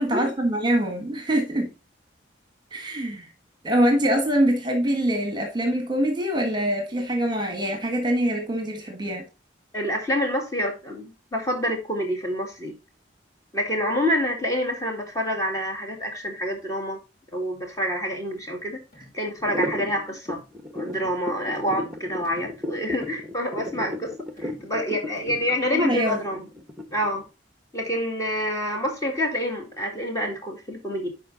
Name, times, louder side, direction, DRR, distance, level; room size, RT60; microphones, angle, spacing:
voice 1, 0.0-1.7 2.7-3.3 3.6-9.2 25.7-26.2, right 1 dB, 25° right, 1.5 m, -24 dB
voice 2, 9.7-12.7 13.5-17.0 17.3-20.4 20.7-24.1 24.4-26.5 26.9-27.2 27.7-31.1, equal, 15° left, 2.0 m, -27 dB
sound 1, 18.9-19.2 19.6-19.9 20.2-20.5 20.9-21.3 21.5-21.9 22.2-22.6 22.9-23.3 23.6-24.0 24.4-24.7 25.2-25.5, left 1 dB, 40° left, 3.8 m, -48 dB
sound 2, 19.4-27.2, left 1 dB, 5° right, 1.1 m, -33 dB
11.0 x 4.5 x 3.9 m
head